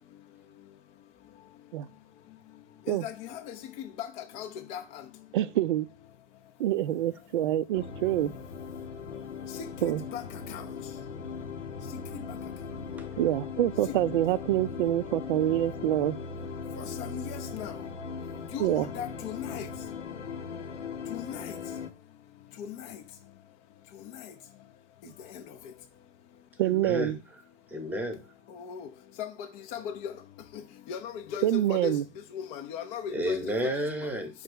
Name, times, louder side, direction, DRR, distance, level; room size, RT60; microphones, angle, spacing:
voice 1, 2.9-3.5 4.0-4.1 4.3-5.0 9.6-10.2 10.5-10.6 16.8-17.7 18.5-19.7 21.1-21.5 22.6-23.0 28.5-28.9 29.2-29.3 29.7-30.1 30.9-32.0 32.3-33.4, left 9 dB, 20° left, 0.5 m, -37 dB
voice 2, 5.3-5.9 6.6-8.3 9.8-10.0 13.2-16.2 18.6-18.9 26.6-27.2 31.4-32.0, right 13 dB, 45° right, 0.4 m, -26 dB
sound 1, 7.7-21.9, left 5 dB, 70° left, 0.9 m, -39 dB
voice 3, 26.6-28.3 33.1-34.4, equal, 5° right, 1.0 m, -33 dB
5.6 x 3.2 x 5.2 m
figure-of-eight pair, 100°, 37 cm